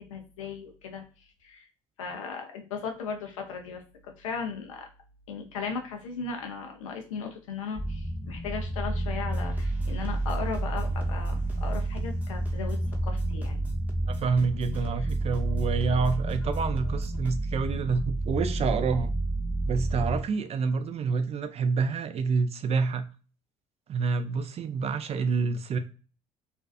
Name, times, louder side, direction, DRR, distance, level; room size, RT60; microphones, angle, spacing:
voice 1, 0.1-1.0 1.4-1.7 2.0-4.9 5.3-12.8 13.0-13.6 15.0-15.1, left 5 dB, 85° left, 0.6 m, -37 dB
sound 1, 7.7-20.2, right 1 dB, 25° left, 0.9 m, -30 dB
sound 2, 9.3-17.3, right 2 dB, 10° right, 0.8 m, -45 dB
voice 2, 14.1-19.1 19.7-23.1 23.9-25.8, right 5 dB, 40° right, 0.4 m, -28 dB
2.5 x 2.3 x 2.3 m
hypercardioid pair, 60°, 16 cm